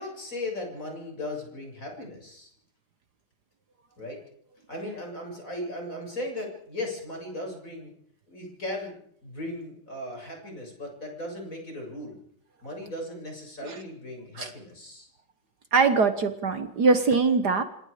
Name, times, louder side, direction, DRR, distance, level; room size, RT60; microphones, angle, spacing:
voice 1, 0.0-2.5 4.0-4.2 4.7-7.9 8.3-12.2 12.6-15.1, left 1 dB, 40° left, 1 dB, 7.6 m, -37 dB
voice 2, 15.7-17.6, right 4 dB, 55° right, 9 dB, 1.8 m, -22 dB
27.0 x 26.0 x 5.1 m, 0.68 s
omnidirectional pair, 2.2 m